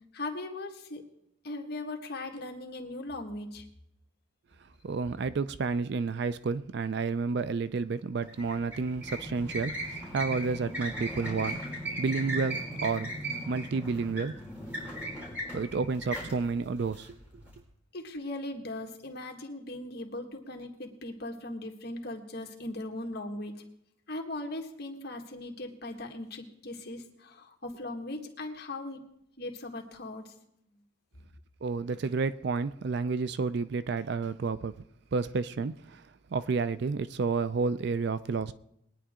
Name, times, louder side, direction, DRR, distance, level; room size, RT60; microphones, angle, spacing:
voice 1, 0.1-1.0 1.4-3.6 17.9-23.6 24.1-29.0 29.4-30.3, left 2 dB, 55° left, 1.7 m, -39 dB
voice 2, 4.8-11.6 12.0-13.1 13.5-14.3 15.5-17.2 31.6-34.7 35.1-38.5, right 4 dB, 55° right, 0.4 m, -30 dB
sound 1, 8.2-17.6, right 1 dB, 10° right, 4.5 m, -38 dB
21.5 x 9.9 x 3.7 m
head